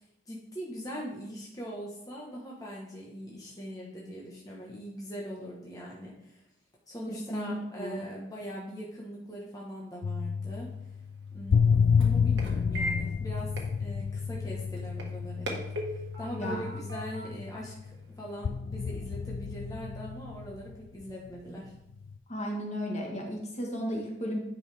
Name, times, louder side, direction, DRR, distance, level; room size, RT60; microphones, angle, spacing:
voice 1, 0.0-6.4 6.9-10.7 11.3-13.5 13.8-15.6 15.9-21.7, equal, 20° left, -4 dB, 1.2 m, -41 dB
voice 2, 7.1-8.0 16.3-16.6 22.3-24.4, equal, 40° left, 0 dB, 1.5 m, -34 dB
sound 1, 10.0-18.0 18.4-21.1 21.9-22.2, left 6 dB, 90° left, 0.4 m, -30 dB
sound 2, 10.6-18.4, equal, 70° right, 1.6 m, -41 dB
9.5 x 5.5 x 3.5 m, 0.80 s
head